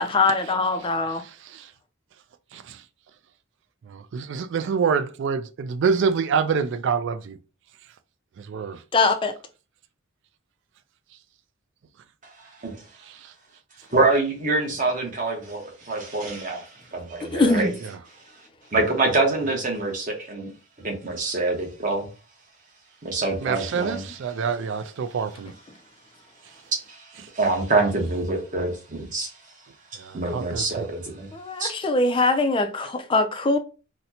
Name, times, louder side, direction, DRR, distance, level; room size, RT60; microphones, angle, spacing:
voice 1, 0.0-1.2 8.9-9.4 17.3-17.7 31.3-33.6, left 3 dB, 25° left, 0.3 m, -22 dB
voice 2, 1.1-1.7 2.5-2.8 3.9-7.4 8.4-8.8 13.0-13.3 17.8-18.0 23.4-25.5 29.9-30.9, right 6 dB, 55° right, 0.3 m, -27 dB
voice 3, 12.4-12.8 13.9-17.7 18.7-20.5 20.8-22.1 23.0-24.0 26.9-29.3 30.1-31.3 31.6-31.7, right 3 dB, 35° right, 0.9 m, -25 dB
4.1 x 2.1 x 2.7 m
head